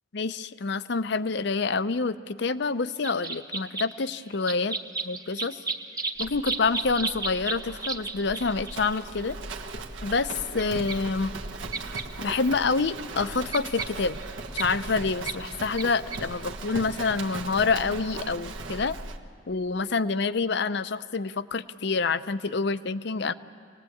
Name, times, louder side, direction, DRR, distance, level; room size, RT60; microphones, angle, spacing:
voice 1, 0.1-4.8 5.0-5.6 6.2-9.4 10.0-11.3 12.2-14.2 14.5-19.0 19.5-23.3, left 4 dB, 60° left, 14 dB, 0.6 m, -27 dB
sound 1, 3.0-9.3 10.6-10.7 10.9-11.0 11.7-12.0 12.5-12.6 12.8-14.6 15.3-15.4 15.8-15.9 16.1-16.2, right 4 dB, 20° right, 0.9 m, -33 dB
Livestock farm animals working animals, 6.2-19.2, right 3 dB, 75° right, 1.4 m, -38 dB
27.0 x 19.5 x 8.6 m, 2.2 s
head